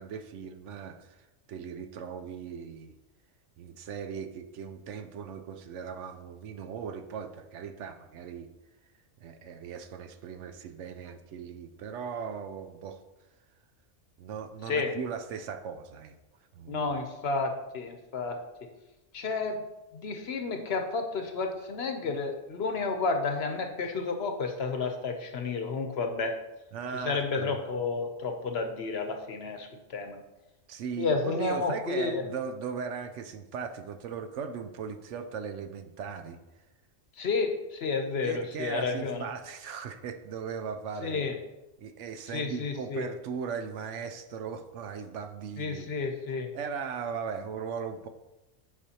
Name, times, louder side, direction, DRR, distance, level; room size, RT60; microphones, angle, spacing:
voice 1, 0.0-2.9 3.6-8.5 9.2-13.0 14.2-16.1 16.5-16.9 26.7-27.6 30.7-36.4 38.2-41.3 41.8-45.9 46.5-48.1, right 6 dB, 75° right, 8 dB, 0.9 m, -38 dB
voice 2, 16.7-18.4 19.1-19.6 19.9-26.3 26.9-30.2 31.0-32.2 37.2-39.2 41.0-41.3 42.3-43.1 45.6-46.5, left 4 dB, 60° left, 5 dB, 0.9 m, -31 dB
9.6 x 5.0 x 2.8 m, 1.0 s
omnidirectional pair, 1.3 m